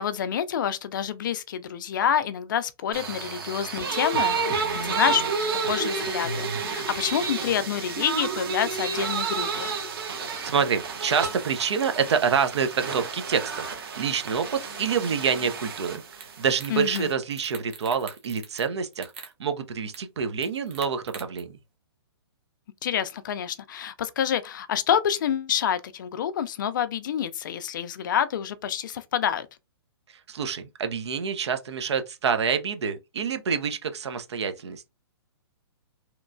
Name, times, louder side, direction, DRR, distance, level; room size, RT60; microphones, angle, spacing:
voice 1, 0.0-5.2 5.5-9.7 16.7-17.1 22.8-29.5, left 9 dB, 45° left, 0.4 m, -27 dB
sound 1, 2.9-17.1, right 5 dB, 55° right, 0.9 m, -31 dB
voice 2, 10.2-21.6 30.3-34.9, right 6 dB, 75° right, 0.6 m, -27 dB
sound 2, 16.2-16.3 16.6-17.0 17.3-18.7 18.9-19.3 19.9-20.0 20.4-21.4, right 6 dB, 25° right, 0.6 m, -42 dB
2.9 x 2.2 x 2.5 m
hypercardioid pair, 160°, 14 cm